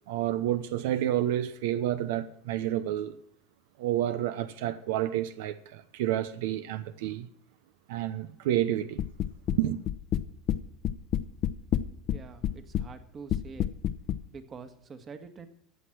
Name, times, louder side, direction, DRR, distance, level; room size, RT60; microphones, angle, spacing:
voice 1, 0.1-3.2 3.8-7.3 7.9-9.0 9.6-9.8, right 12 dB, 80° right, 0.7 m, -29 dB
sound 1, 9.0-9.6 9.9-10.6 10.8-12.2 12.4-12.9 13.3-14.2, left 11 dB, 45° left, 0.8 m, -28 dB
voice 2, 12.0-13.7 14.3-15.5, right 5 dB, 30° right, 1.6 m, -46 dB
14.5 x 8.1 x 6.0 m
supercardioid pair, 120°, 0 cm